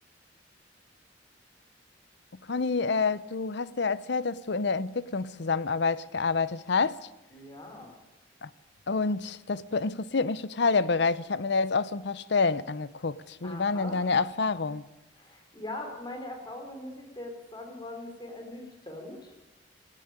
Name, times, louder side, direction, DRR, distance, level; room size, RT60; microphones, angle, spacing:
voice 1, 2.4-7.0 8.4-8.5 8.9-14.9, left 4 dB, 65° left, 0.7 m, -28 dB
voice 2, 7.3-7.9 13.4-14.0 15.2-19.3, left 1 dB, 25° left, 4.1 m, -41 dB
16.5 x 16.5 x 9.6 m
head